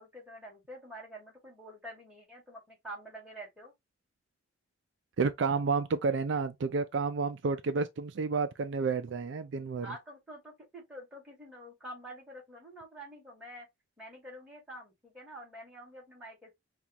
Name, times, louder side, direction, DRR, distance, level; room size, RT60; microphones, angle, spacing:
voice 1, 0.0-3.7 9.8-13.7 14.0-16.6, right 1 dB, 5° right, 2.2 m, -47 dB
voice 2, 5.2-9.9, right 4 dB, 60° right, 0.4 m, -30 dB
5.4 x 2.4 x 2.8 m
head